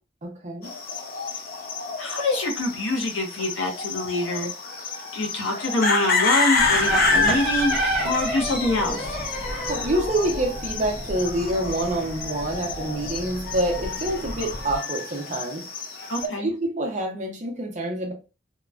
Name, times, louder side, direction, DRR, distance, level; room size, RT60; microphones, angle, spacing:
voice 1, 0.2-0.7 9.7-15.6 16.2-18.1, right 1 dB, 40° right, 0.7 m, -27 dB
sound 1, 0.6-16.3, left 4 dB, 50° left, 0.6 m, -29 dB
voice 2, 2.0-4.5 5.1-7.8 8.0-9.2 16.1-16.5, left 2 dB, 85° left, 0.9 m, -25 dB
sound 2, 6.5-14.7, equal, 5° right, 0.7 m, -30 dB
2.9 x 2.2 x 2.4 m
head